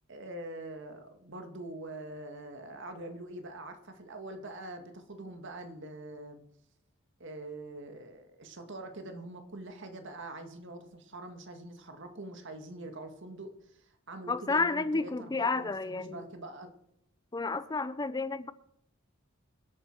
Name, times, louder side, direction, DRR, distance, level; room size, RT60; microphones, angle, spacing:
voice 1, 0.1-6.4 7.2-16.7, right 2 dB, 60° right, 6 dB, 1.9 m, -44 dB
voice 2, 14.3-16.2 17.3-18.5, left 3 dB, 20° left, 14 dB, 0.5 m, -31 dB
24.0 x 8.8 x 4.7 m, 0.74 s
head